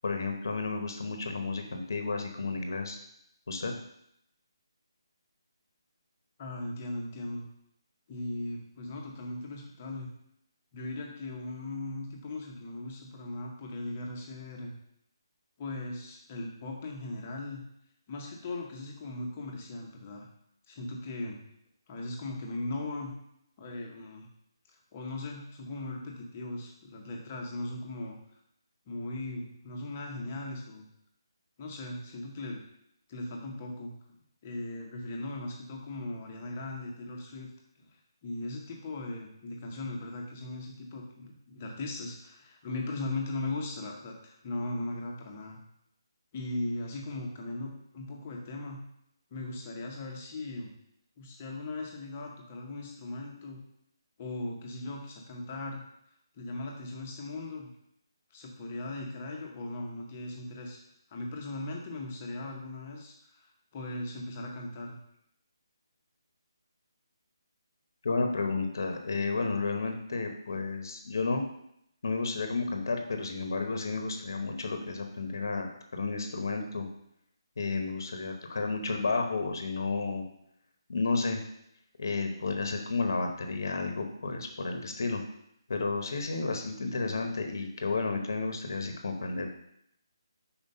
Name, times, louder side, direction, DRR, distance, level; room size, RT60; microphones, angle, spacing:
voice 1, 0.0-3.0 3.5-3.7 68.0-71.4 72.0-75.7 75.9-76.9 77.6-80.2 80.9-81.4 82.0-85.2 85.7-89.5, left 3 dB, 45° left, 4 dB, 0.8 m, -32 dB
voice 2, 6.4-7.5 8.1-10.1 10.7-14.7 15.6-17.6 18.1-20.3 20.7-21.4 21.9-23.1 23.6-24.3 24.9-28.2 28.9-30.9 31.6-32.6 33.1-34.2 34.4-37.5 37.8-45.6 46.3-48.8 49.3-50.7 51.2-53.6 54.2-55.8 56.3-57.7 58.3-60.8 61.1-65.0, left 2 dB, 15° left, 0 dB, 0.7 m, -38 dB
5.4 x 4.3 x 5.4 m, 0.75 s
hypercardioid pair, 180°, 3 cm